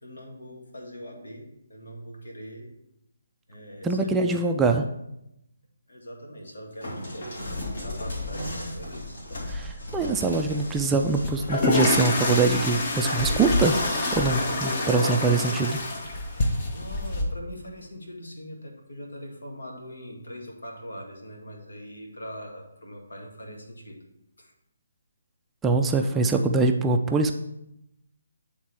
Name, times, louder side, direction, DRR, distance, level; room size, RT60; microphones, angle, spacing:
voice 1, 0.0-2.7 3.5-4.4 5.9-7.3 7.8-9.2 9.5-9.7 16.7-24.0 24.4-24.5, equal, 85° left, 0 dB, 1.9 m, -42 dB
voice 2, 3.8-4.8 9.5-13.8 14.2-15.8 25.6-27.4, right 3 dB, 10° right, 4 dB, 0.4 m, -23 dB
sound 1, 6.8-13.8 14.2-14.9 15.7-16.1, left 1 dB, 65° left, 2.2 m, -37 dB
sound 2, 11.2-17.2, left 2 dB, 40° left, 1.1 m, -26 dB
9.0 x 3.6 x 4.6 m, 0.83 s
figure-of-eight pair, 155°, 0 cm